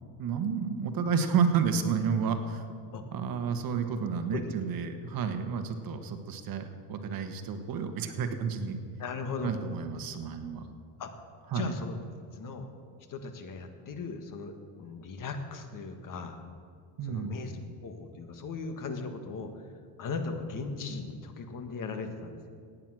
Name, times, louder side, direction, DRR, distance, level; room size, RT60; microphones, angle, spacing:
voice 1, 0.2-2.8 3.1-8.8 9.4-10.7 11.5-11.7 17.0-17.7, right 6 dB, 50° right, 7 dB, 1.3 m, -31 dB
voice 2, 9.0-9.6 11.0-11.1 11.5-12.0 12.3-12.7 13.1-16.4 17.0-17.5 17.8-19.6 20.0-22.5, left 4 dB, 45° left, 7 dB, 1.5 m, -38 dB
17.0 x 9.0 x 6.2 m, 2.2 s
cardioid pair, 120°, 44 cm